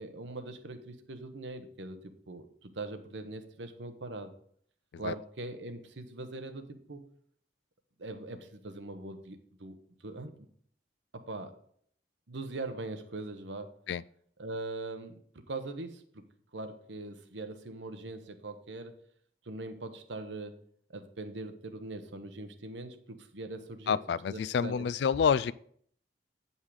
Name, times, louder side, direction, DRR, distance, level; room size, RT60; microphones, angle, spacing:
voice 1, 0.0-4.3 5.0-7.0 8.0-9.7 10.0-10.5 11.1-11.5 12.3-13.8 14.4-15.1 15.5-16.3 16.5-19.0 19.5-20.6 20.9-24.0 24.3-24.9, right 2 dB, 80° right, 8 dB, 0.9 m, -41 dB
voice 2, 23.9-25.5, left 6 dB, 65° left, 19 dB, 0.3 m, -28 dB
8.7 x 5.5 x 4.8 m, 0.62 s
head